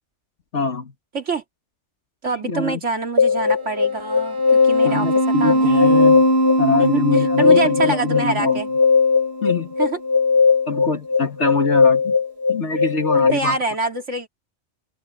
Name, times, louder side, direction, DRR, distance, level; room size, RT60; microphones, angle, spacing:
voice 1, 0.5-0.9 2.4-2.8 4.8-6.2 6.6-8.6 9.4-9.7 10.7-12.2 12.5-13.6, left 3 dB, 70° left, 2.5 m, -24 dB
voice 2, 2.2-5.1 5.4-6.2 6.8-8.7 9.8-10.0 13.2-14.3, right 4 dB, 75° right, 3.0 m, -26 dB
sound 1, 3.2-13.3, left 3 dB, 60° right, 2.2 m, -17 dB
omnidirectional pair, 1.2 m